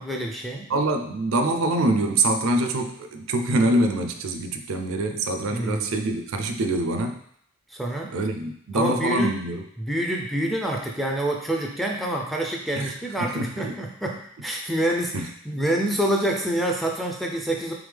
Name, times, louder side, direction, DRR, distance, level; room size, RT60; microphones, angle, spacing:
voice 1, 0.0-0.7 5.5-5.9 7.7-8.1 8.7-9.4 9.8-17.7, right 1 dB, ahead, 0 dB, 0.4 m, -27 dB
voice 2, 0.7-7.2 8.1-9.6 12.8-12.9 13.2-13.8 15.1-15.3, right 2 dB, 80° right, 6 dB, 0.4 m, -25 dB
3.5 x 3.5 x 3.3 m, 0.69 s
head